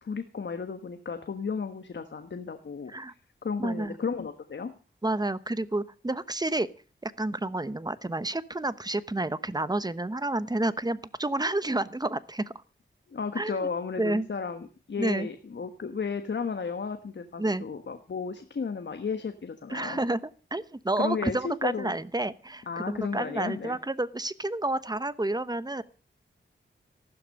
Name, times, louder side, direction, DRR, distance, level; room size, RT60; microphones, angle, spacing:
voice 1, 0.0-2.9 3.4-4.7 13.1-20.0 21.0-21.9 22.7-23.8, left 5 dB, 65° left, 8 dB, 1.4 m, -34 dB
voice 2, 3.6-3.9 5.0-6.7 7.0-12.5 13.4-13.7 14.0-14.3 15.0-15.3 17.4-17.6 19.7-20.2 20.5-25.8, right 2 dB, 20° right, 15 dB, 1.0 m, -30 dB
14.5 x 12.0 x 6.5 m, 0.38 s
wide cardioid pair, 70°, 20 cm